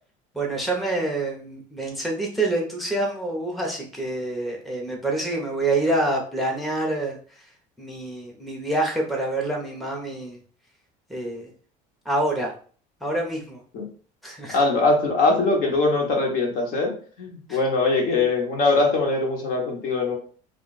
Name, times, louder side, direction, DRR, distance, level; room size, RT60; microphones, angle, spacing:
voice 1, 0.3-7.2 7.8-10.4 11.1-11.5 12.1-12.5 13.0-13.6 14.2-14.6 17.5-17.6, right 2 dB, ahead, -2 dB, 0.7 m, -26 dB
voice 2, 14.5-16.9 17.2-20.1, left 3 dB, 60° left, 0 dB, 1.1 m, -22 dB
2.5 x 2.2 x 3.9 m, 0.43 s
cardioid pair, 120°, 17 cm